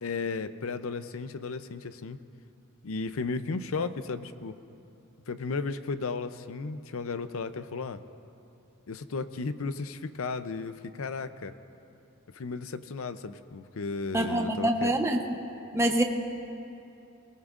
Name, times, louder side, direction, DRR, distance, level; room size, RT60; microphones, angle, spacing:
voice 1, 0.0-2.2 2.8-4.6 5.3-8.0 8.9-11.5 12.3-14.9, left 4 dB, 70° left, 12 dB, 0.6 m, -34 dB
voice 2, 14.1-15.2 15.7-16.0, right 1 dB, 15° right, 3 dB, 0.8 m, -25 dB
21.0 x 19.0 x 2.5 m, 2.7 s
head